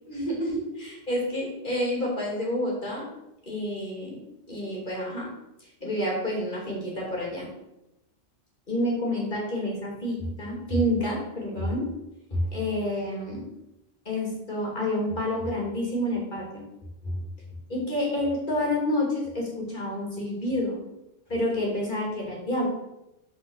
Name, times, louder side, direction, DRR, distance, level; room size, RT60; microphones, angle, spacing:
voice 1, 0.1-3.0 3.5-4.2 4.5-5.2 5.8-7.5 8.7-11.8 12.3-13.4 14.0-16.6 17.0-17.2 17.7-20.8 21.3-22.7, left 1 dB, 45° left, -3 dB, 2.9 m, -28 dB
6.7 x 5.1 x 6.5 m, 0.90 s
omnidirectional pair, 1.2 m